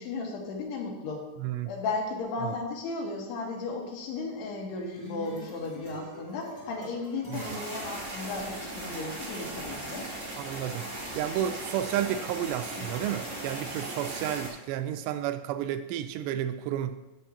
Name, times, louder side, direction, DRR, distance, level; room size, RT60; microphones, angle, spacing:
voice 1, 0.0-1.2 1.7-10.1, left 3 dB, 75° left, 0 dB, 3.4 m, -35 dB
voice 2, 1.4-1.7 2.4-2.5 7.3-7.6 10.4-10.9 11.2-17.0, right 11 dB, 85° right, 10 dB, 2.6 m, -31 dB
sound 1, 4.6-8.9, equal, 5° left, 1.9 m, -46 dB
sound 2, 7.3-14.5, right 1 dB, 30° right, 2.2 m, -38 dB
13.0 x 7.4 x 2.9 m, 1.0 s
omnidirectional pair, 5.0 m